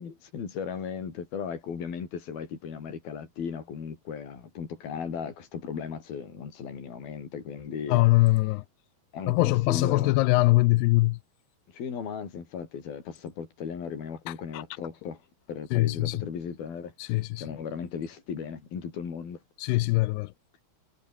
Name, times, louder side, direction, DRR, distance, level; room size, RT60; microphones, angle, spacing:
voice 1, 0.0-8.0 9.1-10.2 11.7-15.2 15.5-19.4, left 6 dB, 60° left, 6.3 m, -36 dB
voice 2, 7.9-8.6 9.3-11.2 14.5-14.6 15.7-16.1 17.1-17.4 19.6-20.3, left 21 dB, 85° left, 2.6 m, -22 dB
omnidirectional pair, 4.8 m